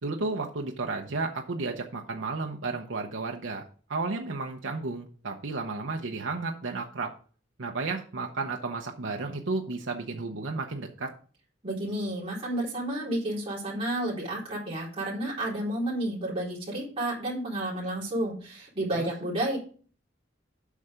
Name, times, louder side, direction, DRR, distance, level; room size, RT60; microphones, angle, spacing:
voice 1, 0.0-3.6 3.9-7.1 7.6-11.1 19.0-19.1, right 3 dB, 80° right, 2 dB, 0.9 m, -33 dB
voice 2, 11.6-19.6, right 1 dB, 30° right, -6 dB, 3.9 m, -31 dB
8.3 x 5.6 x 5.0 m, 0.42 s
head